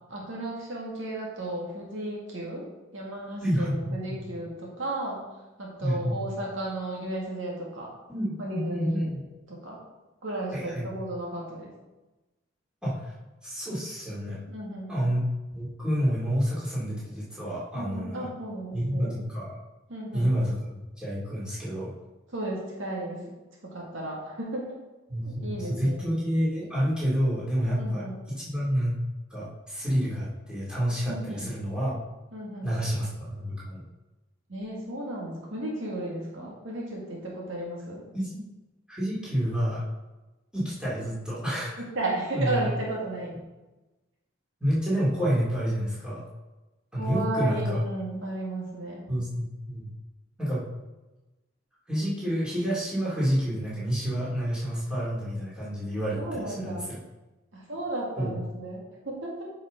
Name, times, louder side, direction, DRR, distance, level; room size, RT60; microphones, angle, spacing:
voice 1, 0.1-2.6 2.9-5.2 5.6-7.9 8.4-9.1 9.5-9.8 10.2-11.7 14.5-14.9 17.7-19.1 19.9-20.3 22.3-23.2 23.7-24.8 25.2-26.1 27.8-28.2 31.1-31.5 32.3-32.7 34.5-38.0 41.8-43.4 47.0-49.1 56.2-56.9 57.5-59.4, right 1 dB, 70° right, -3 dB, 2.0 m, -34 dB
voice 2, 3.4-4.2 5.8-6.2 8.1-9.2 10.5-10.9 12.8-13.1 13.4-14.4 14.9-15.2 15.5-18.3 18.7-19.5 20.1-20.7 21.0-21.9 25.1-29.0 29.3-32.0 32.6-33.8 38.1-38.4 38.9-39.8 40.5-41.8 42.3-42.6 44.6-46.2 46.9-47.8 49.1-49.9 50.4-50.6 51.9-57.0 58.2-58.4, equal, 5° right, -9 dB, 2.7 m, -29 dB
9.1 x 5.5 x 3.8 m, 1.1 s
head